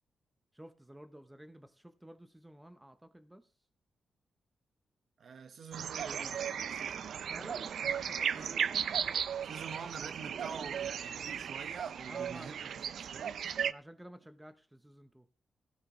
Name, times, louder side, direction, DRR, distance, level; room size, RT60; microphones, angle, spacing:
voice 1, 0.5-3.5 7.3-8.7 12.1-12.7 13.6-15.3, right 1 dB, 5° right, 0.8 m, -52 dB
voice 2, 5.2-7.3 8.3-8.6 9.4-13.3, right 6 dB, 55° right, 1.3 m, -46 dB
sound 1, 5.7-13.7, right 8 dB, 70° right, 0.6 m, -36 dB
16.5 x 14.0 x 3.1 m
wide cardioid pair, 150°, 0 cm